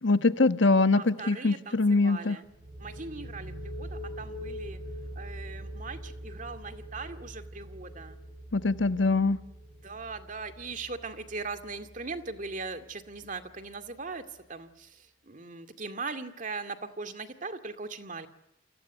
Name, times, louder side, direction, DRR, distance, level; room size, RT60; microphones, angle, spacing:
voice 1, 0.0-2.4 8.5-9.4, left 3 dB, 75° left, 11 dB, 1.3 m, -23 dB
voice 2, 1.0-2.4 2.8-4.8 5.2-8.2 9.8-18.3, right 4 dB, 40° right, 8 dB, 2.2 m, -40 dB
sound 1, 2.4-14.0, equal, 90° right, 6.4 m, -43 dB
29.5 x 23.5 x 8.1 m, 0.80 s
head